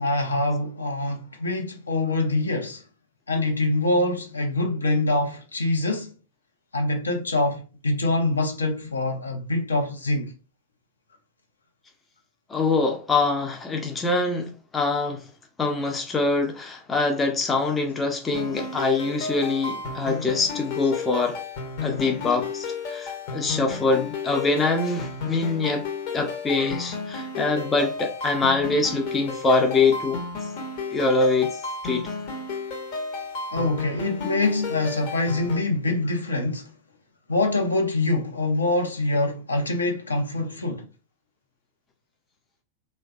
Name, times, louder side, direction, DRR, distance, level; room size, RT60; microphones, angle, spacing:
voice 1, 0.0-2.8 3.3-6.1 6.7-10.3 33.5-36.7 37.3-40.8, left 2 dB, 75° left, 0.7 m, -25 dB
voice 2, 12.5-15.3 15.6-21.4 21.8-25.8 26.1-30.2 30.9-32.1, left 3 dB, 15° left, 0.5 m, -24 dB
sound 1, 18.3-35.6, left 4 dB, 45° left, 0.8 m, -33 dB
3.1 x 2.2 x 2.3 m
figure-of-eight pair, 90°, 0 cm